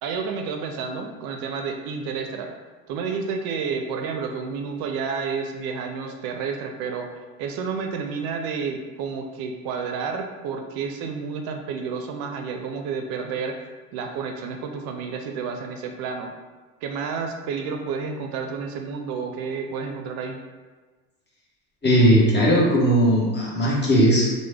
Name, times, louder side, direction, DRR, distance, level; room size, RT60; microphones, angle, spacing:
voice 1, 0.0-2.5 2.9-7.1 7.4-13.6 13.9-16.3 16.8-20.4, right 5 dB, 65° right, 4 dB, 0.5 m, -30 dB
voice 2, 21.8-24.3, equal, 25° left, -4 dB, 1.1 m, -18 dB
3.1 x 2.1 x 3.4 m, 1.3 s
supercardioid pair, 80°, 40 cm